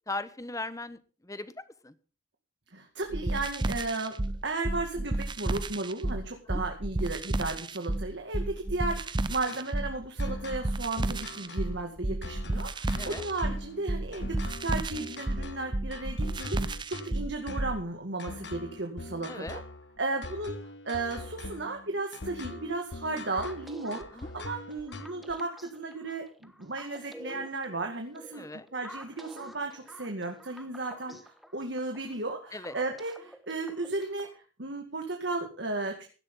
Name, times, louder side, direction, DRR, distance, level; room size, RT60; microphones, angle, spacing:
voice 1, 0.1-1.9 6.5-6.7 13.0-13.3 19.3-19.6 24.1-24.3 28.3-28.7 32.5-32.7, left 2 dB, 15° left, 14 dB, 1.0 m, -38 dB
voice 2, 2.7-19.6 20.0-20.6 20.9-35.9, right 2 dB, 65° right, 3 dB, 2.1 m, -35 dB
sound 1, 3.1-17.8, right 1 dB, 25° right, 0.7 m, -32 dB
sound 2, 9.5-25.3, left 2 dB, 60° left, 1.5 m, -43 dB
sound 3, 23.3-34.4, equal, ahead, 1.3 m, -49 dB
16.5 x 12.5 x 3.8 m, 0.37 s
head